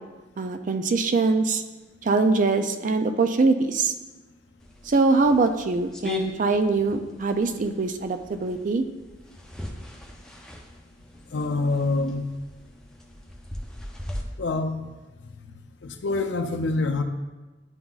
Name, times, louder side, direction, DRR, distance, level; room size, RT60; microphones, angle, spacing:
voice 1, 0.4-1.6 2.0-3.9 4.9-8.8, right 3 dB, 45° right, 7 dB, 0.4 m, -23 dB
sound 1, 4.6-14.2, left 1 dB, 5° left, 0.6 m, -39 dB
voice 2, 11.3-12.3 14.4-14.9 15.8-17.0, left 3 dB, 75° left, 6 dB, 0.5 m, -26 dB
10.5 x 3.8 x 2.4 m, 1.2 s
head